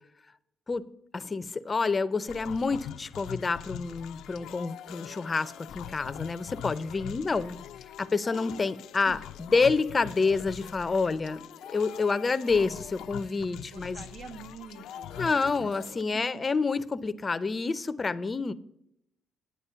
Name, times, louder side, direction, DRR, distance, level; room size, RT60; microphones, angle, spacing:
voice 1, 1.1-7.6 8.0-11.4 11.7-14.0 15.2-18.5, left 4 dB, 30° left, 0.5 m, -28 dB
sound 1, 2.3-16.0, left 11 dB, 85° left, 0.4 m, -43 dB
voice 2, 13.6-16.5, right 5 dB, 70° right, 1.3 m, -47 dB
9.7 x 9.3 x 5.6 m
cardioid pair, 90°, 0 cm